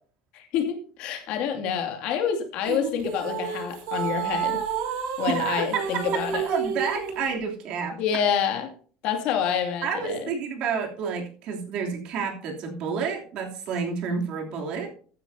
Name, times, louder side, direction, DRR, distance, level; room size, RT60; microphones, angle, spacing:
voice 1, 0.3-4.6 5.2-6.5 8.0-8.7 9.0-10.3, left 8 dB, 55° left, 5 dB, 2.4 m, -27 dB
sound 1, 2.7-7.2, right 7 dB, 75° right, 4.7 m, -30 dB
voice 2, 5.3-8.0 9.8-14.9, right 5 dB, 45° right, 2 dB, 3.1 m, -30 dB
14.5 x 9.8 x 2.8 m, 0.42 s
cardioid pair, 170°, 2 cm